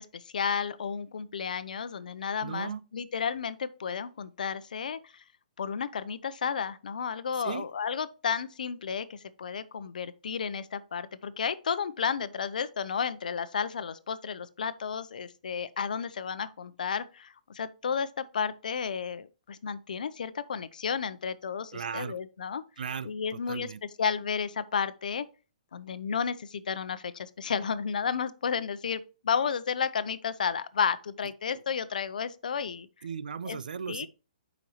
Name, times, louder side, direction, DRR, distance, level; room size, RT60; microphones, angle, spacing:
voice 1, 0.0-5.2 5.6-22.6 23.0-23.7 24.0-25.3 25.7-32.9 33.5-33.6 33.9-34.1, left 6 dB, 80° left, 0.6 m, -32 dB
voice 2, 2.4-2.8 7.4-7.7 21.7-22.2 22.8-23.8 33.0-34.1, right 6 dB, 90° right, 0.5 m, -37 dB
7.8 x 5.2 x 2.9 m
hypercardioid pair, 165°, 4 cm